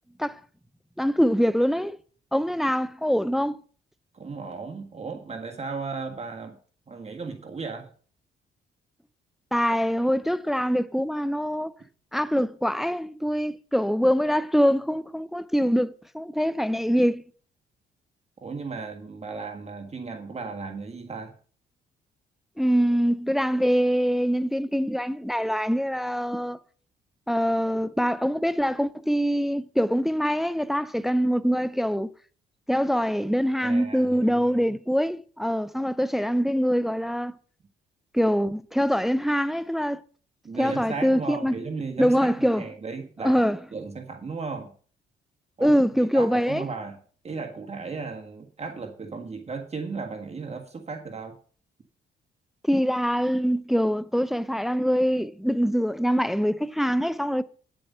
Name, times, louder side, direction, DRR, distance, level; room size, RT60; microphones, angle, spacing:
voice 1, 1.0-2.0 2.3-3.6 9.5-11.7 12.1-17.2 22.6-26.6 27.3-32.1 32.7-37.4 38.1-40.0 40.6-41.6 42.0-42.7 43.2-43.6 45.6-46.6 52.6-57.4, equal, ahead, 0.5 m, -24 dB
voice 2, 4.1-6.6 6.9-7.9 18.4-21.3 33.6-34.6 40.4-44.7 45.6-45.8 46.1-47.0 47.2-51.4, right 4 dB, 35° right, 1.7 m, -35 dB
9.9 x 7.8 x 5.6 m
cardioid pair, 90°, 20 cm